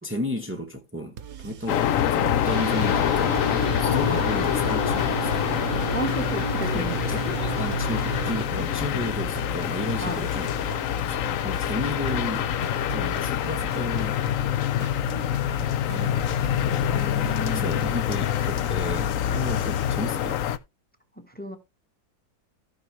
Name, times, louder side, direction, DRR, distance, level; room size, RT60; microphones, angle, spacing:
voice 1, 0.0-5.7 6.7-10.5 11.1-12.5 12.9-14.2 15.9-20.4, left 1 dB, 15° right, 0.5 m, -34 dB
sound 1, 1.2-18.6, right 8 dB, 60° right, 1.1 m, -40 dB
sound 2, 1.7-20.6, left 10 dB, 75° left, 0.7 m, -26 dB
sound 3, 2.4-8.5, right 12 dB, 75° right, 1.4 m, -33 dB
voice 2, 5.9-7.3 10.0-10.3 16.9-17.8 21.2-21.6, equal, 5° left, 0.9 m, -33 dB
14.5 x 5.6 x 3.2 m
omnidirectional pair, 2.1 m